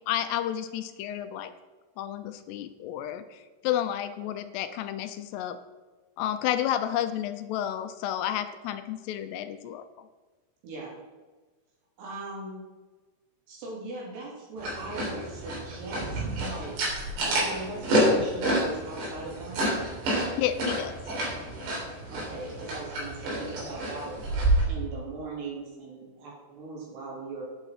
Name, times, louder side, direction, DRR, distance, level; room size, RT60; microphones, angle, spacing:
voice 1, 0.1-1.5 2.0-5.6 6.2-9.8 20.4-20.9, left 11 dB, 80° left, 10 dB, 2.6 m, -31 dB
voice 2, 10.6-11.0 12.0-12.6 13.5-16.8 17.1-19.7 22.1-24.2 24.7-27.4, right 3 dB, 75° right, -4 dB, 5.4 m, -39 dB
sound 1, 14.6-24.6, right 1 dB, 90° right, 5.4 m, -29 dB
10.5 x 8.5 x 4.9 m, 1.3 s
omnidirectional pair, 4.9 m